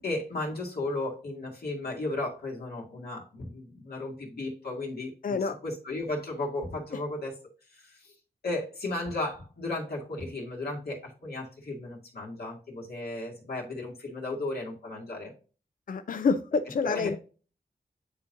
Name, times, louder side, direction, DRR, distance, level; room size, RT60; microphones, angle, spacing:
voice 1, 0.0-7.3 7.7-8.1 8.4-15.3 16.8-17.2, left 2 dB, 70° left, 2.3 m, -35 dB
voice 2, 5.2-5.6 15.9-17.2, left 4 dB, 55° left, 0.5 m, -27 dB
9.6 x 3.8 x 2.6 m
wide cardioid pair, 80°, 17 cm